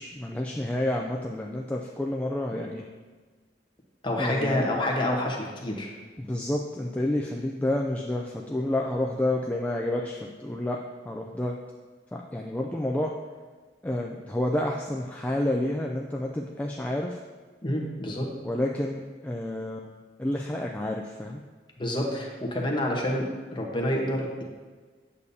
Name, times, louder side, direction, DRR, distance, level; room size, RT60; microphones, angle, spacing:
voice 1, 0.0-2.8 4.2-4.6 6.2-10.8 11.1-11.6 12.1-13.1 13.8-17.2 18.4-21.4, left 1 dB, 10° left, -1 dB, 0.3 m, -29 dB
voice 2, 4.0-5.9 17.6-18.3 21.8-24.4, left 1 dB, 25° left, -1 dB, 1.1 m, -28 dB
8.4 x 6.9 x 2.7 m, 1.4 s
head